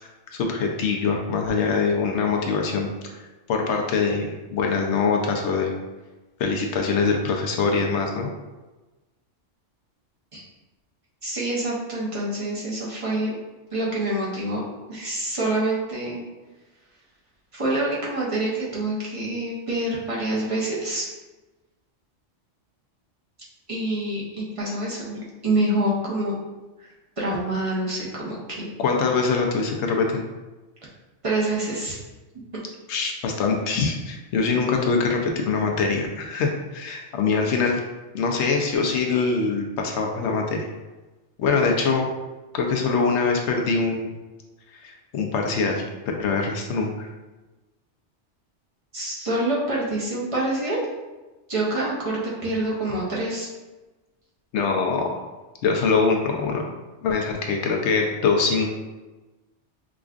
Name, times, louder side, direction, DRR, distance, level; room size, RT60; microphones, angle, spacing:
voice 1, 0.3-2.9 3.5-5.7 6.4-8.3 28.8-30.2 32.9-37.8 38.1-40.7 41.4-42.1 42.5-44.1 44.8-45.8 46.2-47.1 54.5-55.2 55.6-56.6 57.0-58.7, left 4 dB, 75° left, 2 dB, 0.9 m, -23 dB
voice 2, 11.2-13.4 13.7-14.6 14.9-16.2 17.5-21.1 23.7-26.4 26.8-28.7 31.2-32.0 48.9-50.8 51.5-53.5, right 1 dB, 30° right, -5 dB, 0.8 m, -26 dB
4.9 x 2.4 x 2.4 m, 1.1 s
omnidirectional pair, 1.2 m